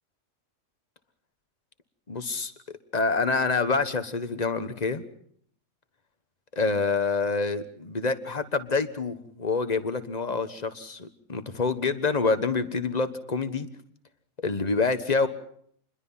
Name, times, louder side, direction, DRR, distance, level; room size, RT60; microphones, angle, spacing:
voice 1, 2.1-2.5 2.9-5.0 6.5-13.7 14.4-15.3, left 4 dB, 30° left, 11 dB, 1.4 m, -27 dB
28.0 x 22.0 x 5.7 m, 0.63 s
omnidirectional pair, 1.4 m